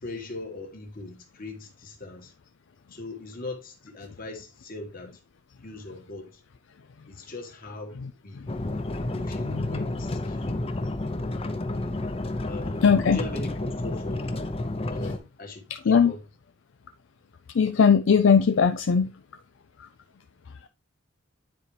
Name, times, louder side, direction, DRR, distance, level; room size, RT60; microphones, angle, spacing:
voice 1, 0.0-2.3 2.9-5.2 5.6-6.4 7.1-8.4 9.3-10.6 12.4-14.5 14.9-16.2, left 2 dB, 45° left, 1.9 m, -40 dB
sound 1, 8.5-15.2, left 2 dB, 30° left, 0.6 m, -30 dB
voice 2, 9.5-9.8 12.8-13.2 15.9-16.1 17.5-19.1, left 6 dB, 65° left, 0.4 m, -19 dB
9.6 x 4.3 x 3.3 m
head